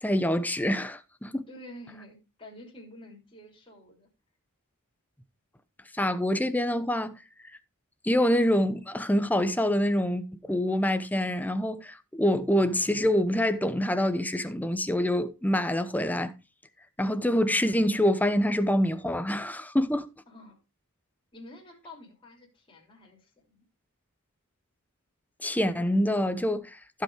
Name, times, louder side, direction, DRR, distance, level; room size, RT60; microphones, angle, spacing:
voice 1, 0.0-1.5 6.0-7.2 8.0-16.3 17.0-20.1 25.4-27.0, left 1 dB, 10° left, 0.8 m, -26 dB
voice 2, 1.5-4.1 20.3-20.6 21.3-23.6, left 1 dB, 25° left, 3.5 m, -49 dB
15.5 x 5.6 x 4.8 m
head